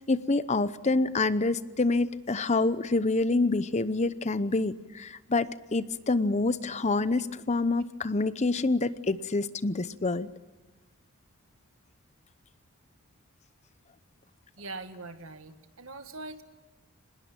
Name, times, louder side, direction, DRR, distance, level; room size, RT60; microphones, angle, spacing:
voice 1, 0.1-10.3, left 3 dB, 30° left, 14 dB, 0.7 m, -27 dB
voice 2, 14.6-16.4, right 3 dB, 65° right, 8 dB, 1.8 m, -42 dB
25.0 x 20.5 x 8.9 m, 1.2 s
head